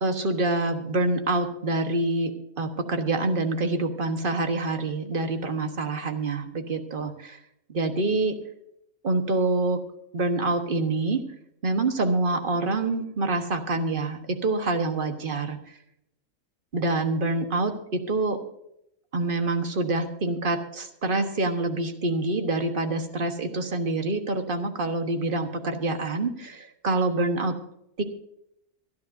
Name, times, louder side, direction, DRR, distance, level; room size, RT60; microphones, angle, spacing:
voice 1, 0.0-2.3 2.6-7.4 7.7-8.3 9.0-9.8 10.1-11.2 11.6-15.6 16.7-18.4 19.1-27.5 28.0-28.1, right 2 dB, 40° right, 6 dB, 1.4 m, -26 dB
25.0 x 10.5 x 2.7 m, 0.80 s
omnidirectional pair, 1.4 m